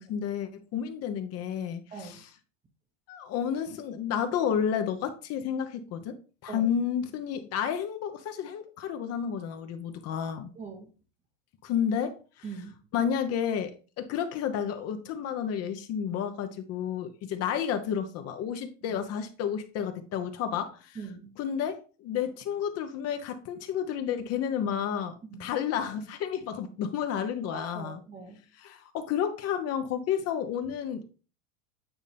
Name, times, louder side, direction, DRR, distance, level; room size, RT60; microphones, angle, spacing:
voice 1, 0.0-2.3 3.1-10.5 11.6-12.2 12.9-21.0 21.4-28.0 28.6-31.1, left 8 dB, 40° left, 1.0 m, -31 dB
voice 2, 1.9-2.2 6.5-6.7 10.6-10.9 12.4-12.7 20.9-21.3 25.3-25.5 27.5-28.4, right 4 dB, 20° right, 1.0 m, -42 dB
9.1 x 4.0 x 3.5 m
supercardioid pair, 125°, 37 cm